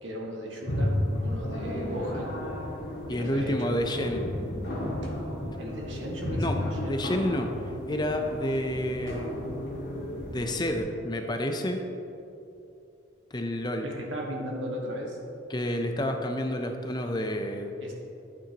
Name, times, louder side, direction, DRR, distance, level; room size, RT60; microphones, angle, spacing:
voice 1, 0.0-2.4 3.1-3.8 5.0-5.2 5.6-7.0 9.1-9.2 13.8-15.2 17.8-17.9, equal, 75° right, -2 dB, 1.7 m, -36 dB
sound 1, 0.7-10.8, left 1 dB, 60° left, 1.8 m, -33 dB
voice 2, 3.1-4.2 6.4-9.3 10.3-11.8 13.3-13.9 15.5-17.8, left 1 dB, 20° left, 4 dB, 0.5 m, -29 dB
11.0 x 8.6 x 2.9 m, 2.8 s
head